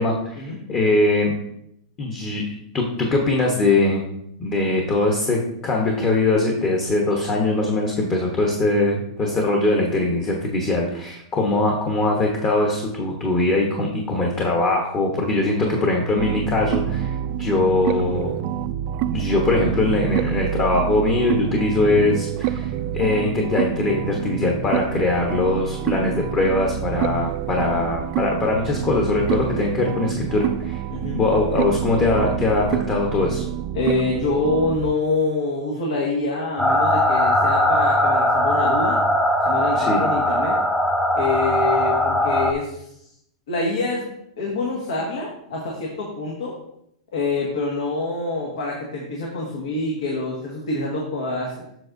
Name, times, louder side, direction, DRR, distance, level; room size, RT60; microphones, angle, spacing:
voice 1, 0.0-1.3 2.0-4.0 4.4-18.3 19.1-30.8 31.1-33.4 39.7-40.0, left 2 dB, 25° left, 0 dB, 1.0 m, -21 dB
sound 1, 16.2-34.9, right 11 dB, 45° right, 0.3 m, -27 dB
voice 2, 30.9-31.2 33.7-39.0 39.4-40.6 41.1-42.9 43.5-44.1 44.4-46.6 47.1-51.5, left 2 dB, 80° left, -2 dB, 1.6 m, -26 dB
sound 2, 36.6-42.5, left 1 dB, 5° left, 0.5 m, -19 dB
7.6 x 6.2 x 2.6 m, 0.76 s
hypercardioid pair, 140°, 3 cm